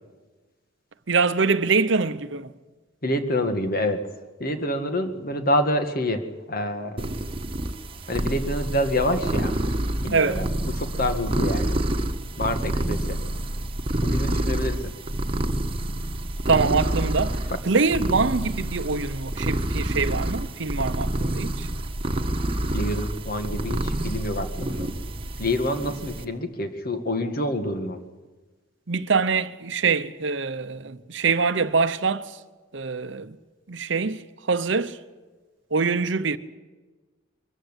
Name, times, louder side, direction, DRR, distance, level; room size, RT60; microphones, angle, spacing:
voice 1, 1.1-2.5 10.1-10.4 16.5-21.7 28.9-32.4 32.7-33.4 33.7-35.0 35.7-36.4, right 4 dB, 65° right, 0.8 m, -24 dB
voice 2, 3.0-4.0 4.4-7.1 8.1-9.5 10.0-10.5 10.8-11.8 12.4-13.2 14.0-14.9 17.5-17.6 22.7-24.9 25.4-28.0, left 1 dB, 50° left, 1.9 m, -27 dB
sound 1, 7.0-26.2, right 1 dB, 30° right, 1.4 m, -28 dB
22.5 x 14.5 x 9.9 m
head